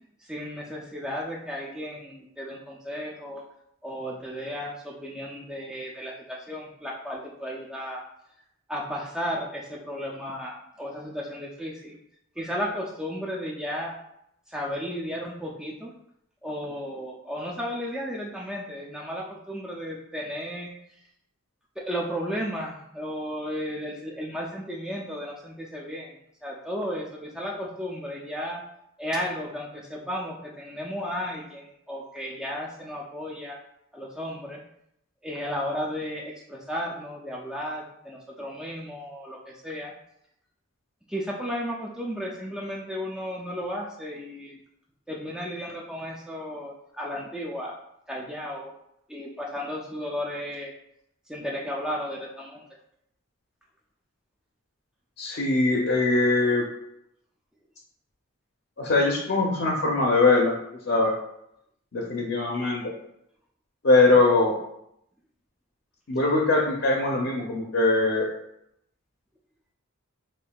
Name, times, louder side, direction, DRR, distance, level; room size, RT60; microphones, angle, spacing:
voice 1, 0.2-3.4 3.8-8.0 8.7-12.0 12.4-13.9 14.5-15.9 16.4-21.0 21.8-28.6 29.0-33.6 33.9-34.6 35.2-39.9 41.1-44.6 45.1-47.8 48.1-48.7 49.1-50.7 51.3-52.6, equal, 5° right, -3 dB, 0.3 m, -34 dB
voice 2, 55.2-56.6 58.8-60.5 60.9-61.1 61.9-62.8 63.8-64.5 66.1-68.3, left 3 dB, 55° left, -1 dB, 0.6 m, -21 dB
5.1 x 2.6 x 2.2 m, 0.78 s
head